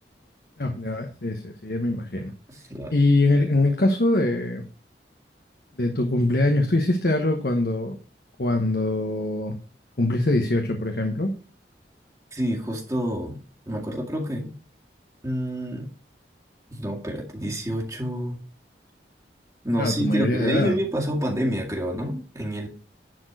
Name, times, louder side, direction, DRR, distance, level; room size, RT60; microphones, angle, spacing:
voice 1, 0.6-2.3 2.9-4.6 5.8-8.0 8.4-9.6 10.0-11.3 19.8-20.7, left 2 dB, 60° left, 4 dB, 1.1 m, -23 dB
voice 2, 2.5-3.1 12.3-13.4 13.7-14.5 15.2-15.9 16.7-18.4 19.6-22.7, equal, 20° right, 0 dB, 2.1 m, -28 dB
10.5 x 4.5 x 6.1 m, 0.38 s
head